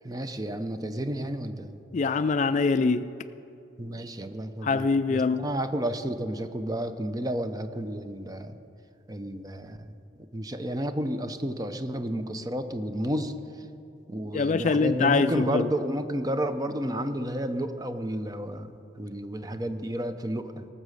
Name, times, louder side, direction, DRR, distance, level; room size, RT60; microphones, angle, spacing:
voice 1, 0.0-1.8 3.8-8.6 9.1-9.9 10.2-13.3 14.1-18.7 19.0-20.7, right 1 dB, 20° right, 9 dB, 0.6 m, -31 dB
voice 2, 1.9-3.1 4.6-5.5 14.3-15.7, left 4 dB, 40° left, 12 dB, 0.3 m, -24 dB
18.0 x 7.4 x 6.4 m, 2.6 s
head